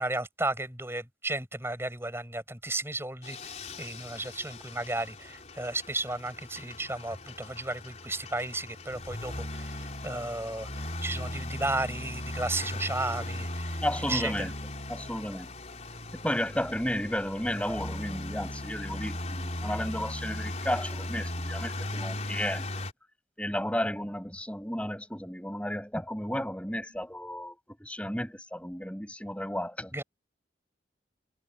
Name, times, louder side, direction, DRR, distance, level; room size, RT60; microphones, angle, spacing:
voice 1, 0.0-13.8 14.1-14.5 29.9-30.0, right 2 dB, 15° right, 7.6 m, -34 dB
sound 1, 3.2-22.9, left 1 dB, 40° left, 4.1 m, -38 dB
voice 2, 13.8-14.5 14.9-15.5 16.1-22.9 23.4-29.9, left 1 dB, 5° left, 6.4 m, -33 dB
head